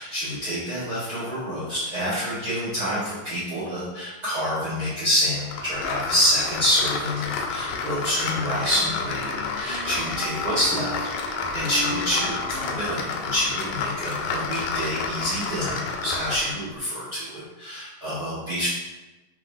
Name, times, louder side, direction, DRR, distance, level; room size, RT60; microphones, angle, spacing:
voice 1, 0.0-18.7, equal, 85° right, -11 dB, 0.8 m, -27 dB
sound 1, 5.5-16.6, left 4 dB, 80° left, 1.9 m, -30 dB
Wind instrument woodwind instrument, 7.7-15.0, equal, 55° right, 1.2 m, -39 dB
7.6 x 2.7 x 2.6 m, 1.1 s
omnidirectional pair, 3.9 m